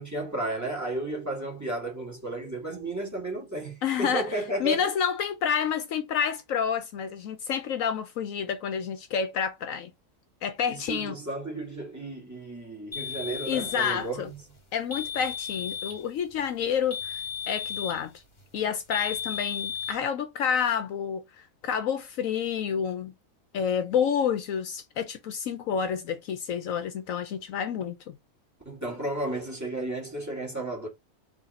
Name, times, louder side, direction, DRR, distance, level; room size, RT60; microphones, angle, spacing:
voice 1, 0.0-4.9 10.7-14.4 28.7-30.9, right 1 dB, 10° right, 1.9 m, -33 dB
voice 2, 3.8-4.3 4.6-9.9 10.4-11.1 13.5-14.3 14.7-18.1 18.5-21.2 21.6-23.1 23.5-28.1, left 7 dB, 70° left, 1.0 m, -29 dB
sound 1, 12.9-14.0 14.9-16.0 16.9-18.0 18.9-20.0, left 7 dB, 35° left, 1.4 m, -34 dB
3.9 x 3.1 x 4.2 m
omnidirectional pair, 1.5 m